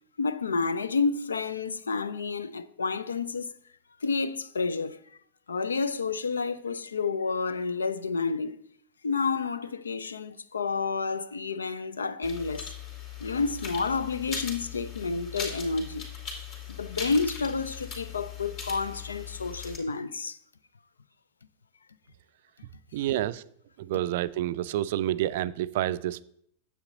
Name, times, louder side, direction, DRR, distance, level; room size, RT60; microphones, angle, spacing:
voice 1, 0.2-3.5 4.0-5.0 5.5-8.6 9.0-12.7 13.2-16.1 16.7-20.4 23.0-23.1, left 4 dB, 75° left, 0.4 m, -30 dB
sound 1, 12.2-19.8, left 6 dB, 45° left, 2.7 m, -39 dB
voice 2, 22.9-23.4 23.8-26.2, right 13 dB, 55° right, 0.3 m, -28 dB
9.6 x 7.6 x 3.9 m
figure-of-eight pair, 90°, 0 cm